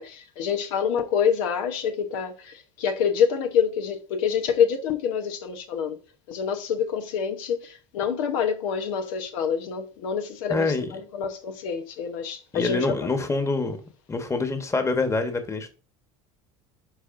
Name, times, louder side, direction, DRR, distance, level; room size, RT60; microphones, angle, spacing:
voice 1, 0.0-6.0 6.3-12.9, left 7 dB, 75° left, 1.0 m, -26 dB
voice 2, 10.5-10.9 12.5-13.8 14.1-15.7, left 3 dB, 15° left, 1.3 m, -25 dB
11.0 x 4.1 x 2.6 m
supercardioid pair, 95°, 17 cm